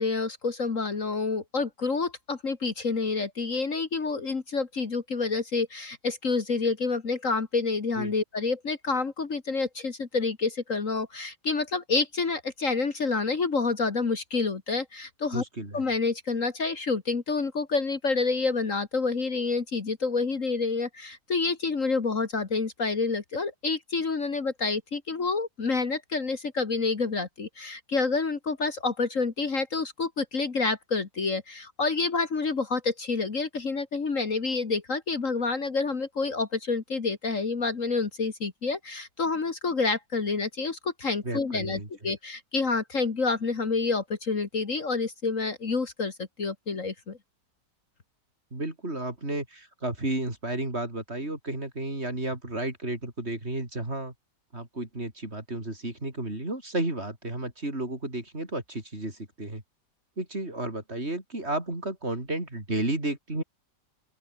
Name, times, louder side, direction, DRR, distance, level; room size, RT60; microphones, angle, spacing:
voice 1, 0.0-15.4 15.7-47.2, left 4 dB, 50° left, 2.3 m, -28 dB
voice 2, 15.3-15.8 41.2-42.1 48.5-54.1 54.5-59.6 60.2-63.4, right 2 dB, 35° right, 5.5 m, -32 dB
open air
omnidirectional pair, 1.8 m